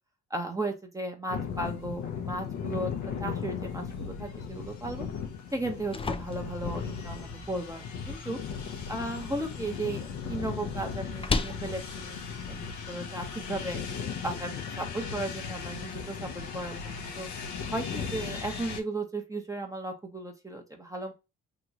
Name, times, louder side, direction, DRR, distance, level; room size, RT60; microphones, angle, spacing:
voice 1, 0.3-2.9 3.2-5.1 5.5-8.4 8.9-12.2 12.5-13.8 14.2-17.3 17.7-21.1, right 2 dB, 10° right, 3 dB, 0.8 m, -35 dB
sound 1, 1.3-18.8, left 6 dB, 75° left, 0.8 m, -37 dB
sound 2, 5.5-13.5, left 4 dB, 20° left, 0.4 m, -38 dB
3.0 x 2.9 x 2.4 m, 0.25 s
cardioid pair, 90°, 30 cm